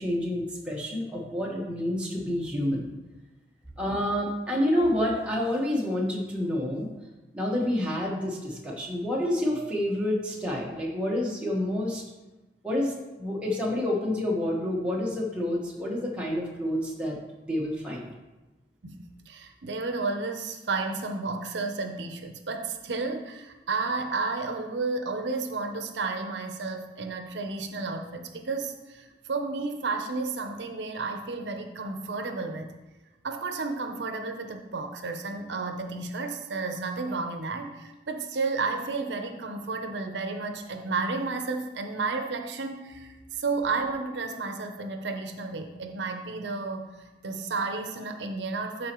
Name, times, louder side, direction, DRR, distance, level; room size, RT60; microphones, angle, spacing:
voice 1, 0.0-2.9 3.8-6.9 7.3-12.0 12.6-17.2 17.4-18.0, left 1 dB, 5° right, -4 dB, 1.2 m, -28 dB
voice 2, 18.8-32.7 33.2-48.9, right 3 dB, 80° right, 6 dB, 0.7 m, -32 dB
12.0 x 4.3 x 3.0 m, 1.1 s
head